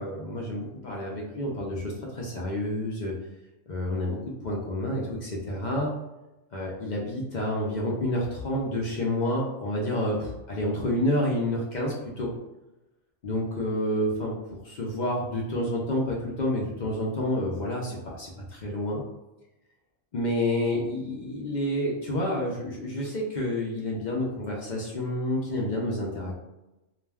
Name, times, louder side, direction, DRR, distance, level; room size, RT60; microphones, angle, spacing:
voice 1, 0.0-3.1 3.7-4.2 4.4-5.9 6.5-12.3 13.2-14.3 14.6-19.0 20.1-26.3, left 1 dB, 55° left, -3 dB, 0.5 m, -29 dB
2.4 x 2.2 x 3.3 m, 0.99 s
omnidirectional pair, 1.2 m